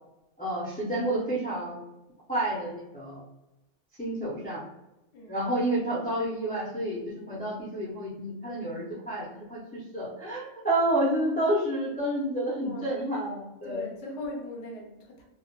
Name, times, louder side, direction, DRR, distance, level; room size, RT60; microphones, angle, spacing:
voice 1, 0.4-1.8 2.3-3.2 4.0-4.6 5.3-7.0 7.3-13.9, right 1 dB, 15° left, -7 dB, 0.3 m, -29 dB
voice 2, 12.5-13.0 13.6-15.2, left 1 dB, 75° left, 0 dB, 1.0 m, -40 dB
2.3 x 2.0 x 2.8 m, 0.94 s
omnidirectional pair, 1.3 m